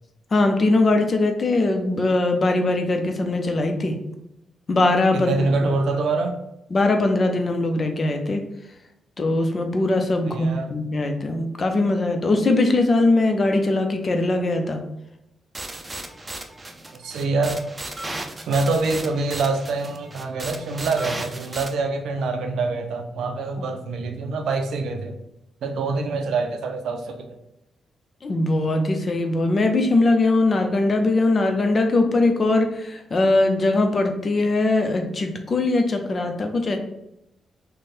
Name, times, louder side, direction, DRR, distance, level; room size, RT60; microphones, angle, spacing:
voice 1, 0.3-4.0 4.7-5.4 6.7-8.4 9.2-14.8 23.6-23.7 28.2-36.8, left 2 dB, 45° left, 5 dB, 0.6 m, -21 dB
voice 2, 5.1-6.4 10.3-10.7 16.9-17.6 18.5-25.2 25.6-27.3, right 3 dB, 75° right, 6 dB, 0.5 m, -25 dB
sound 1, 15.5-21.7, right 2 dB, 25° right, 0.6 m, -35 dB
3.1 x 2.2 x 4.2 m, 0.84 s
supercardioid pair, 50°, 0 cm